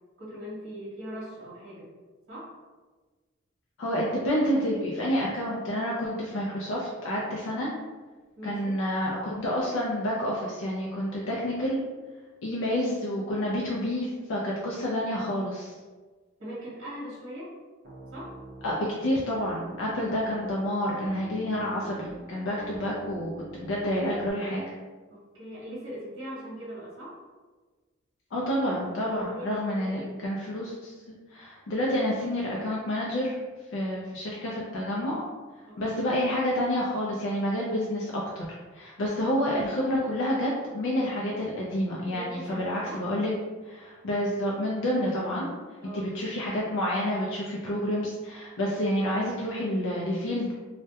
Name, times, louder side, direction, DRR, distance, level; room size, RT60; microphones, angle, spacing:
voice 1, 0.2-1.9 2.3-2.5 8.4-8.7 16.4-17.5 18.1-18.3 25.1-27.2 29.1-30.1 35.7-36.0 42.1-43.0 45.8-46.1, equal, 65° right, -7 dB, 0.9 m, -40 dB
voice 2, 3.8-7.7 8.4-11.8 12.4-15.7 18.6-24.6 28.3-30.9 31.3-33.4 33.7-35.2 35.8-38.5 38.7-43.3 43.6-45.5 45.9-50.5, equal, 65° left, -4 dB, 0.4 m, -29 dB
Piano, 17.8-18.8 19.3-20.5 20.9-24.3, right 2 dB, 45° right, 0.6 m, -45 dB
2.2 x 2.1 x 2.7 m, 1.3 s
head